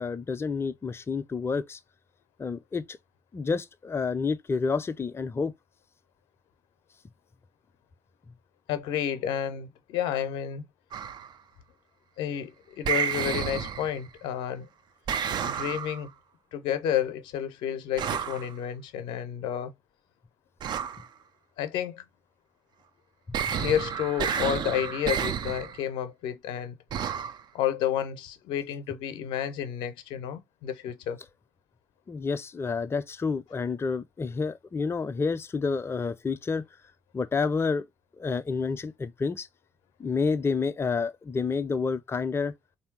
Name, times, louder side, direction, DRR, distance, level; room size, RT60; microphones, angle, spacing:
voice 1, 0.0-1.8 2.4-3.0 3.3-5.5 23.3-23.4 32.1-36.6 37.1-37.9 38.2-39.5 40.0-42.5, left 4 dB, 30° left, 0.5 m, -29 dB
voice 2, 8.7-10.6 12.2-14.7 15.4-16.1 16.5-19.7 21.6-22.0 23.5-26.7 27.5-31.2, left 10 dB, 70° left, 0.7 m, -30 dB
sound 1, 10.9-11.3 12.8-14.1 15.1-16.1 18.0-18.5 20.6-21.1 23.3-25.8 26.9-27.4, right 8 dB, 55° right, 0.5 m, -30 dB
3.3 x 2.7 x 4.5 m
hypercardioid pair, 45°, 9 cm